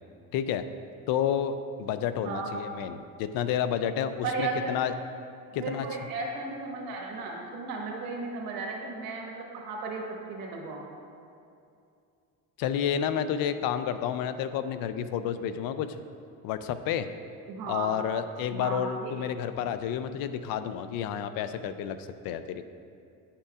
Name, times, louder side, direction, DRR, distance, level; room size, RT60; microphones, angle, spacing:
voice 1, 0.3-0.6 1.1-4.9 5.5-5.9 12.6-16.0 16.4-17.1 17.7-22.6, left 9 dB, 70° left, 11 dB, 0.5 m, -30 dB
voice 2, 2.2-2.5 4.2-4.9 5.6-10.0 10.3-10.8 17.5-17.9 18.5-19.3, right 3 dB, 75° right, -1 dB, 1.3 m, -35 dB
9.7 x 5.6 x 2.4 m, 2.5 s
cardioid pair, 105°, 36 cm